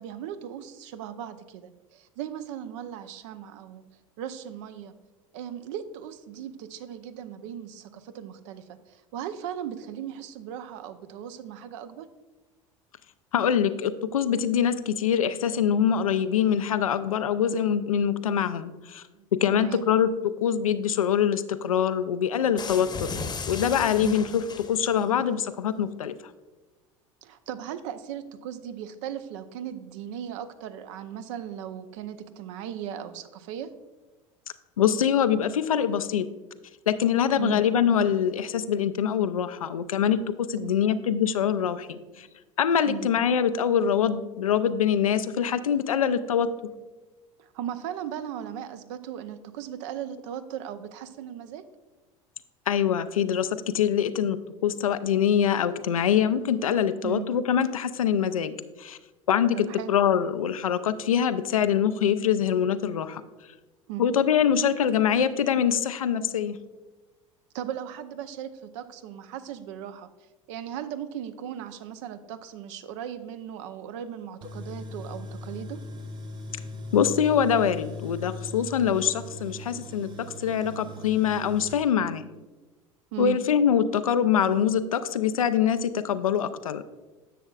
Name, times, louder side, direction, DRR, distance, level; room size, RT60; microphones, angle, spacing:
voice 1, 0.0-3.8 4.2-4.9 5.3-12.1 19.1-19.2 19.5-19.8 23.9-24.2 27.2-33.7 37.4-37.6 40.6-41.0 42.9-43.1 47.4-51.6 57.0-57.3 59.5-59.9 63.9-64.1 67.5-70.1 70.5-75.8 83.1-83.4, right 10 dB, 65° right, 11 dB, 0.6 m, -37 dB
voice 2, 13.3-19.0 19.3-26.1 34.8-36.3 36.9-42.3 42.6-46.5 52.7-54.4 54.6-59.0 59.3-63.2 64.0-66.6 76.9-82.3 83.2-86.8, left 8 dB, 85° left, 12 dB, 0.4 m, -24 dB
sound 1, 22.6-25.0, left 4 dB, 25° left, 0.8 m, -36 dB
Tools, 74.4-81.7, left 2 dB, 25° right, 0.9 m, -39 dB
10.0 x 7.0 x 2.4 m, 1.2 s
figure-of-eight pair, 70°, 17 cm